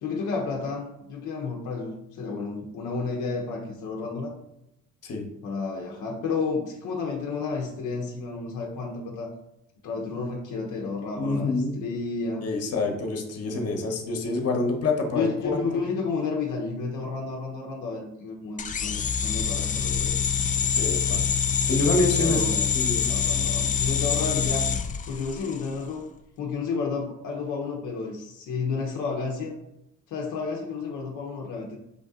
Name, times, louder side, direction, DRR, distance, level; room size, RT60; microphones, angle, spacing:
voice 1, 0.0-4.3 5.4-9.3 9.8-12.5 15.1-20.2 22.2-22.7 23.0-24.7 25.1-26.1 26.4-29.6 30.1-31.8, left 4 dB, 80° left, 0 dB, 0.8 m, -31 dB
voice 2, 11.2-11.8 12.4-15.8 20.8-21.2 21.7-23.1, left 2 dB, 55° left, 3 dB, 1.0 m, -27 dB
sound 1, 18.6-25.7, left 7 dB, 25° left, 0.3 m, -25 dB
5.1 x 2.7 x 3.7 m, 0.84 s
cardioid pair, 90°, 30 cm